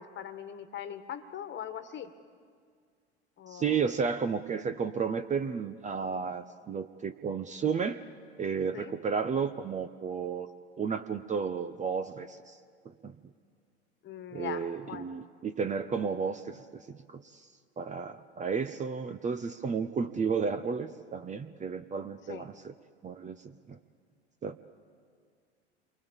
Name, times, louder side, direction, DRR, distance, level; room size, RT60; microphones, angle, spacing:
voice 1, 0.0-2.1 3.4-3.8 8.7-8.9 14.0-15.1 22.3-22.5, left 9 dB, 35° left, 10 dB, 1.7 m, -41 dB
voice 2, 3.5-8.0 8.4-10.5 10.8-12.6 12.8-13.1 14.3-16.8 17.1-17.5 17.8-22.7 23.0-23.8 24.4-24.6, right 6 dB, 20° right, 10 dB, 0.9 m, -33 dB
28.5 x 23.5 x 7.3 m, 2.1 s
figure-of-eight pair, 80°, 34 cm